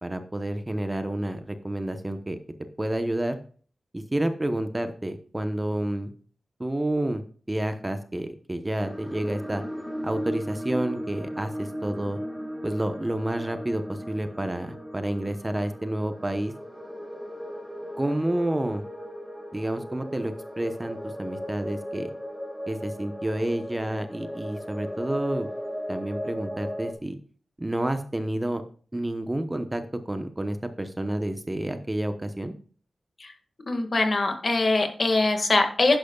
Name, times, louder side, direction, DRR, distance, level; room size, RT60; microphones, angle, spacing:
voice 1, 0.0-2.4 2.8-3.4 3.9-6.1 6.6-7.2 7.5-9.6 10.0-12.2 12.6-16.5 18.0-18.8 19.5-22.1 22.7-25.5 25.9-27.1 27.6-28.6 28.9-32.5, right 1 dB, 20° right, 8 dB, 0.9 m, -29 dB
sound 1, 8.8-26.9, equal, 5° left, 1.9 m, -37 dB
voice 2, 33.7-36.0, left 2 dB, 45° left, 5 dB, 1.9 m, -23 dB
11.0 x 10.5 x 2.4 m, 0.43 s
wide cardioid pair, 90°, 0 cm